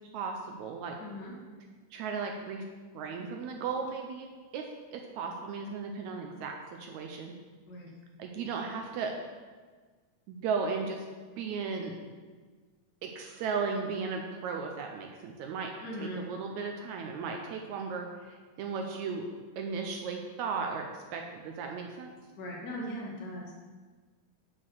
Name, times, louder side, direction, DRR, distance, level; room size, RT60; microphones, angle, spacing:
voice 1, 0.1-1.0 1.9-2.6 2.9-4.3 4.5-7.3 8.2-9.2 10.3-11.1 11.4-12.0 13.0-15.7 16.0-19.3 19.6-22.1, right 5 dB, 75° right, 2 dB, 1.8 m, -36 dB
voice 2, 1.0-1.3 7.7-7.9 15.8-16.3 22.4-23.6, equal, 40° left, -4 dB, 1.6 m, -39 dB
6.5 x 5.9 x 6.2 m, 1.4 s
omnidirectional pair, 3.7 m